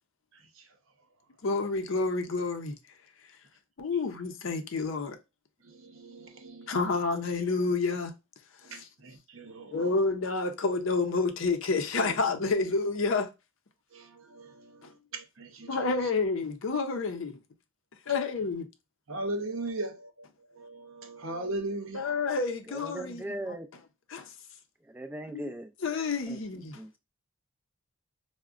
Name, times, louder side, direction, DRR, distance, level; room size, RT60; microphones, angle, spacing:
voice 1, 0.3-0.8 5.6-6.7 8.6-10.0 11.9-12.2 13.9-16.1 19.1-22.3, right 2 dB, 70° right, 0.8 m, -39 dB
voice 2, 1.4-2.8 3.8-5.2 6.7-8.1 9.7-13.3 15.7-17.4 18.1-18.7 21.9-23.3 24.1-24.3 25.3-25.5 25.8-26.8, left 3 dB, 65° left, 0.6 m, -29 dB
voice 3, 22.7-23.7 24.8-25.7 26.3-27.0, right 1 dB, 10° right, 0.3 m, -39 dB
4.7 x 2.1 x 2.4 m
head